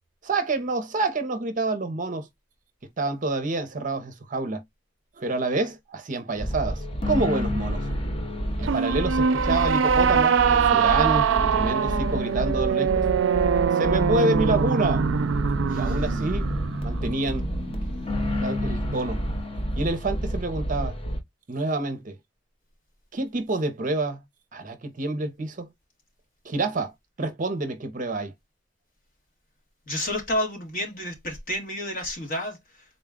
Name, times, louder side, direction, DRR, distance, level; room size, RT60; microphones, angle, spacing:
voice 1, 0.2-2.3 3.0-4.6 5.2-7.9 8.6-13.0 13.7-15.0 15.7-16.5 16.8-17.5 18.4-19.2 19.8-21.0 21.5-22.2 23.1-24.2 24.5-25.7 26.4-26.9 27.2-28.3, right 2 dB, 45° right, 0.6 m, -27 dB
sound 1, 6.3-21.2, equal, 30° left, 0.8 m, -29 dB
sound 2, 8.6-18.0, right 6 dB, 85° right, 0.4 m, -23 dB
voice 2, 29.9-32.8, left 1 dB, 50° left, 1.4 m, -30 dB
3.9 x 2.2 x 3.5 m
head